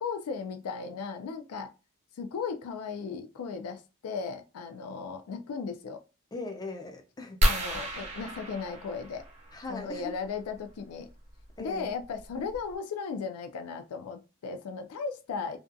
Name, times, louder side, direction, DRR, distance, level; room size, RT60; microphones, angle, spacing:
voice 1, 0.0-1.7 2.2-6.0 7.4-9.2 9.7-11.1 11.6-15.6, left 5 dB, 85° left, 0.4 m, -36 dB
voice 2, 6.3-7.4 9.5-10.1 11.6-11.9, left 3 dB, 15° left, 0.3 m, -39 dB
sound 1, 7.4-9.8 11.4-11.6 12.2-12.3 12.5-12.8, right 1 dB, 30° right, 0.6 m, -30 dB
2.5 x 2.2 x 2.5 m
head